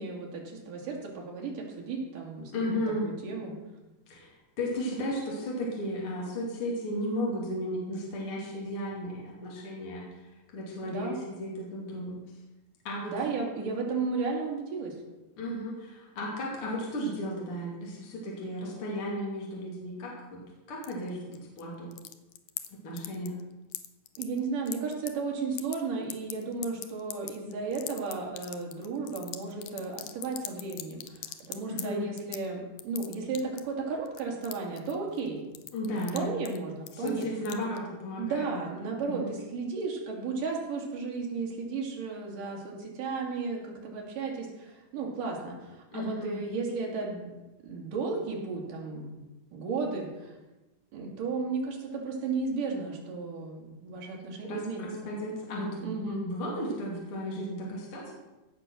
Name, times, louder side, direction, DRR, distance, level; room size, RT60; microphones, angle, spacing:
voice 1, 0.0-3.6 10.8-11.2 13.1-15.0 24.2-35.4 35.9-37.3 38.2-47.3 47.6-49.2 49.5-50.3 50.9-54.9 55.8-56.2, right 4 dB, 65° right, -1 dB, 4.0 m, -34 dB
voice 2, 2.5-3.1 4.1-4.3 4.6-10.1 10.5-12.2 12.8-13.1 15.4-20.4 20.7-21.9 22.7-23.4 31.7-32.1 35.7-36.3 36.9-38.7 39.0-39.3 45.9-46.4 54.4-58.1, equal, 40° left, -3 dB, 3.3 m, -34 dB
sound 1, 20.8-21.6 21.9-22.7 23.0-23.4 23.7-25.1 25.4-25.8 26.1-31.8 32.2-32.5 32.8-33.7 34.1-35.3 35.6-36.2 36.5-36.6 36.9-37.8, left 13 dB, 75° left, 2.3 m, -40 dB
16.5 x 6.1 x 6.2 m, 1.1 s
omnidirectional pair, 4.2 m